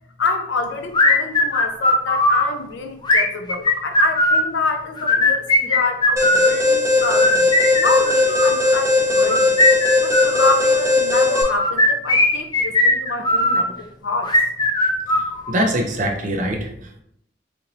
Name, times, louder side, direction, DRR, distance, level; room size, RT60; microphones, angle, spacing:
voice 1, 0.2-9.5 9.8-14.3, left 3 dB, 80° left, 5 dB, 0.5 m, -27 dB
sound 1, 0.9-2.5 3.0-4.5 5.0-6.5 7.0-8.6 9.2-10.6 11.3-13.6 14.2-15.7, left 2 dB, 25° left, 0.4 m, -18 dB
Alarm, 6.2-11.4, left 3 dB, 15° right, 0.8 m, -18 dB
voice 2, 15.1-17.0, right 1 dB, 40° right, 2 dB, 0.5 m, -24 dB
4.3 x 2.9 x 2.6 m, 0.73 s
head